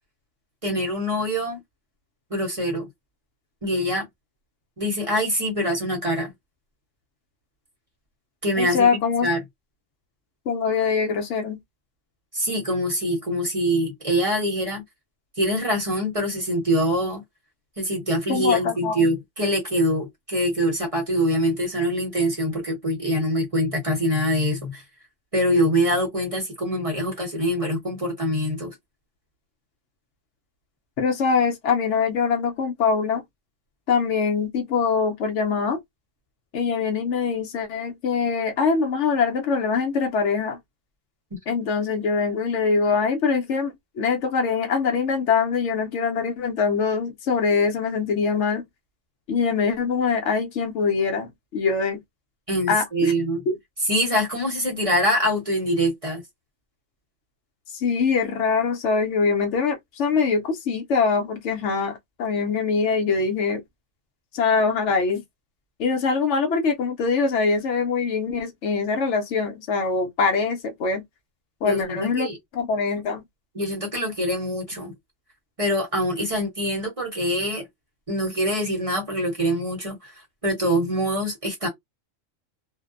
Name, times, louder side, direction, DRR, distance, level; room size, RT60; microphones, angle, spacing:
voice 1, 0.6-1.6 2.3-2.9 3.6-4.1 4.8-6.3 8.4-8.9 9.2-9.4 12.3-14.8 15.4-17.2 17.8-24.8 25.3-28.7 41.3-41.4 52.5-53.4 53.8-56.2 71.6-72.4 73.5-74.9 75.6-77.6 78.1-80.1 80.4-81.7, equal, 30° right, 0.9 m, -24 dB
voice 2, 8.6-9.3 10.5-11.6 18.3-19.1 31.0-33.2 33.9-35.8 36.5-40.6 41.5-48.6 49.3-52.0 52.7-53.1 53.5-53.6 57.7-63.6 64.3-65.2 65.8-71.0 71.6-72.3 72.5-73.2, left 5 dB, 70° left, 0.9 m, -23 dB
2.5 x 2.1 x 2.4 m
omnidirectional pair, 1.3 m